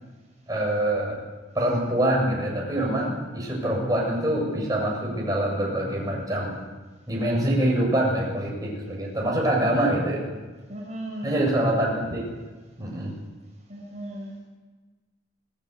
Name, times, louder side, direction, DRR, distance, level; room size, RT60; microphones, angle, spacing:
voice 1, 0.5-1.2 1.5-6.6 7.1-10.2 11.2-12.2 12.8-13.1, right 1 dB, 20° right, -2 dB, 7.4 m, -25 dB
voice 2, 10.7-11.3 13.7-14.3, right 1 dB, 35° right, -2 dB, 6.6 m, -36 dB
27.0 x 17.5 x 8.3 m, 1.3 s
head